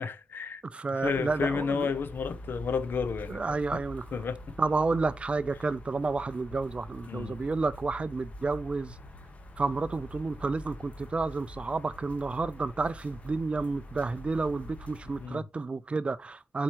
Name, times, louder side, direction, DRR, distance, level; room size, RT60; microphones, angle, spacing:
voice 1, 0.0-0.6 0.9-3.8 4.1-4.4 7.1-7.4 15.2-15.4, left 5 dB, 70° left, 0.7 m, -32 dB
voice 2, 0.7-1.9 3.3-4.0 4.6-8.9 9.6-16.6, right 3 dB, 30° right, 0.4 m, -30 dB
sound 1, 1.0-15.3, left 1 dB, 35° left, 1.3 m, -45 dB
7.7 x 4.4 x 3.0 m
wide cardioid pair, 155°, 4 cm